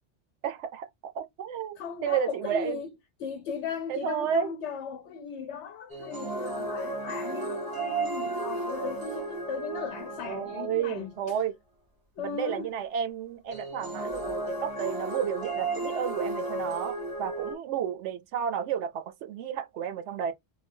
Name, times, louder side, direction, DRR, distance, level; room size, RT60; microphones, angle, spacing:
voice 1, 0.4-2.8 3.9-4.5 10.2-11.5 12.2-20.3, right 8 dB, 75° right, 0.9 m, -32 dB
voice 2, 1.8-2.9 3.2-11.4 12.2-12.7, left 6 dB, 70° left, 0.8 m, -37 dB
sound 1, 5.9-11.0 13.5-17.5, right 2 dB, 20° right, 0.7 m, -34 dB
2.7 x 2.2 x 3.5 m
omnidirectional pair, 1.3 m